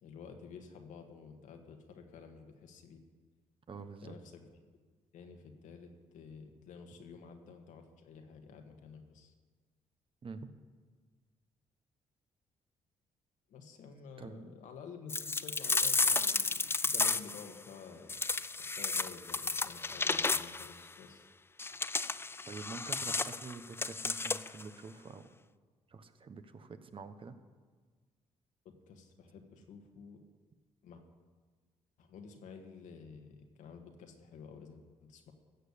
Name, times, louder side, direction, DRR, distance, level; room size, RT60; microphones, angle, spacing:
voice 1, 0.0-3.0 4.0-4.5 5.1-9.3 13.5-18.2 18.6-21.2 28.7-30.2 30.8-31.0 32.0-35.3, left 5 dB, 75° left, 4 dB, 1.7 m, -51 dB
voice 2, 3.7-4.2 10.2-10.5 14.2-14.5 22.5-25.3 25.9-27.3, right 4 dB, 45° right, 9 dB, 1.2 m, -47 dB
sound 1, 15.1-17.5 18.1-20.7 21.6-24.6, left 3 dB, 20° left, 0.4 m, -32 dB
15.0 x 6.7 x 8.4 m, 1.5 s
supercardioid pair, 70°, 13 cm